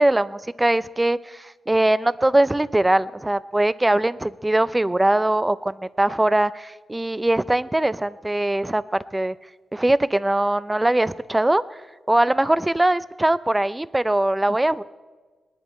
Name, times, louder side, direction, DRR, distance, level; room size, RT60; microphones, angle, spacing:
voice 1, 0.0-9.4 9.7-11.8 12.1-14.8, right 1 dB, 10° right, 17 dB, 0.4 m, -21 dB
20.5 x 11.0 x 4.4 m, 1.3 s
wide cardioid pair, 120°, 0 cm